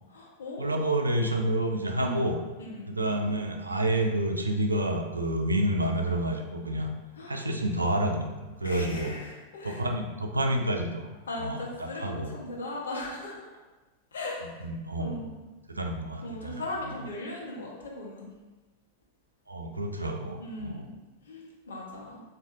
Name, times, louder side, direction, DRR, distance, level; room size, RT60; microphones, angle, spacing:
voice 1, 0.1-0.8 2.0-2.3 2.6-2.9 7.2-7.4 8.6-9.8 11.3-13.5 14.1-14.5 15.0-15.3 16.2-18.3 20.4-20.9 21.3-22.2, left 1 dB, 65° left, -3 dB, 0.7 m, -38 dB
voice 2, 0.6-2.4 2.9-6.9 7.3-9.1 9.6-11.1 11.4-12.3 14.6-15.2 15.7-17.0 19.5-20.9, right 1 dB, 80° right, 3 dB, 0.3 m, -29 dB
3.5 x 2.6 x 2.5 m, 1.2 s
figure-of-eight pair, 90°, 0 cm